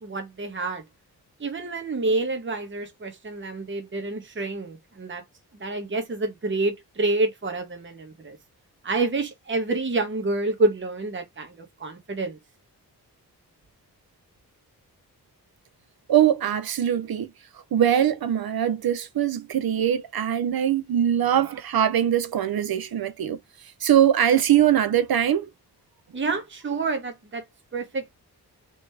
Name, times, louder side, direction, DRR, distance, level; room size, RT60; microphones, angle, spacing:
voice 1, 0.0-0.8 1.4-5.2 5.5-8.4 8.8-12.4 26.1-27.4 27.7-28.0, right 3 dB, 30° right, 1.0 m, -28 dB
voice 2, 16.1-17.3 17.7-23.4 23.8-25.5, right 10 dB, 65° right, 0.7 m, -22 dB
3.1 x 3.0 x 3.2 m
cardioid pair, 50°, 39 cm